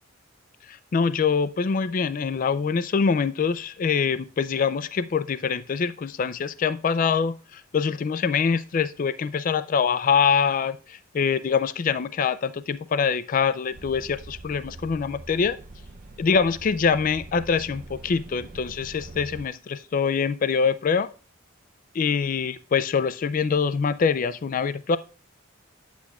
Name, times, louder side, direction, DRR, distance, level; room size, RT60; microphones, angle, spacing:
voice 1, 0.9-15.6 16.2-21.1 21.9-25.0, left 6 dB, 40° left, 15 dB, 0.3 m, -24 dB
sound 1, 13.7-19.5, right 2 dB, 40° right, 0.5 m, -43 dB
9.8 x 8.2 x 2.3 m, 0.36 s
head